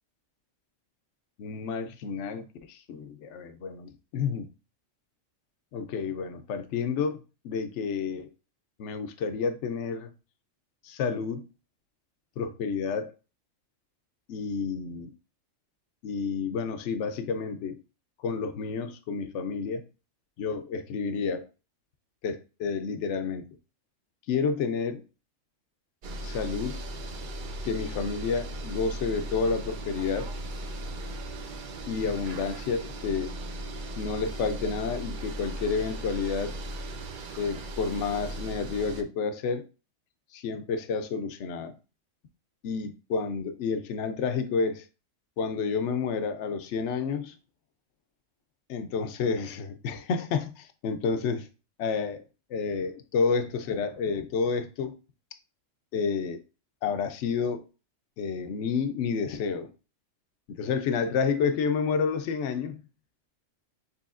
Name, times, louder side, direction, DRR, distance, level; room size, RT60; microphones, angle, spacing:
voice 1, 1.4-4.5 5.7-8.3 8.8-10.1 10.8-11.4 12.4-13.1 14.3-15.1 16.0-17.8 18.2-19.8 20.4-21.5 22.2-23.5 24.3-25.0 26.2-26.8 27.6-30.3 31.9-33.3 34.0-36.6 37.4-39.7 40.3-41.7 42.6-44.8 45.4-47.4 48.7-51.5 51.8-52.2 52.5-55.0 55.9-56.4 56.8-57.6 58.2-59.7 60.6-62.8, left 5 dB, 70° left, 0.9 m, -30 dB
sound 1, 26.0-39.0, right 1 dB, 55° right, 0.6 m, -37 dB
6.8 x 3.1 x 2.5 m
omnidirectional pair, 1.3 m